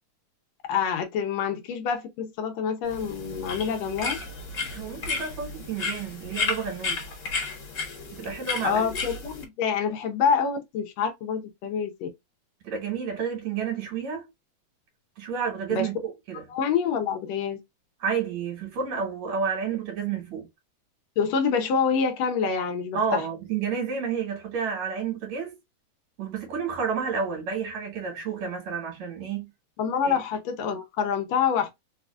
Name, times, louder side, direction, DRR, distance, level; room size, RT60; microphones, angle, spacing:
voice 1, 0.7-4.2 8.6-12.1 15.7-15.9 16.5-17.6 21.2-23.2 29.8-31.7, left 6 dB, 75° left, 1.7 m, -26 dB
sound 1, 2.9-9.4, left 4 dB, 45° left, 1.6 m, -33 dB
voice 2, 4.6-7.1 8.2-8.9 12.6-14.3 15.2-16.5 18.0-20.5 22.9-25.6 26.2-29.5 30.0-30.2, right 6 dB, 70° right, 2.3 m, -30 dB
4.7 x 2.3 x 2.3 m
omnidirectional pair, 3.3 m